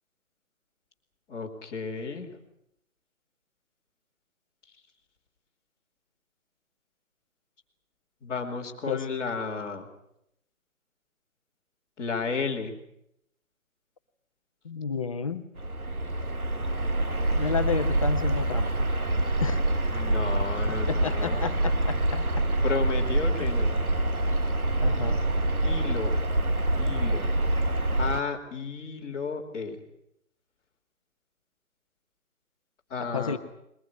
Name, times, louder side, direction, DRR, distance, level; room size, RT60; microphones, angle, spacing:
voice 1, 1.3-2.4 8.2-9.9 12.0-12.7 19.9-21.4 22.6-23.8 25.6-26.2 26.8-27.3 28.0-29.8 32.9-33.4, left 4 dB, 10° left, -7 dB, 2.6 m, -33 dB
voice 2, 14.6-15.5 17.3-18.7 19.4-19.6 20.9-22.5 23.4-23.5 24.8-25.2 33.0-33.4, left 5 dB, 25° left, 7 dB, 1.3 m, -31 dB
sound 1, 15.6-28.2, right 1 dB, 85° right, 1.7 m, -26 dB
22.0 x 21.5 x 9.6 m, 0.77 s
figure-of-eight pair, 155°, 43 cm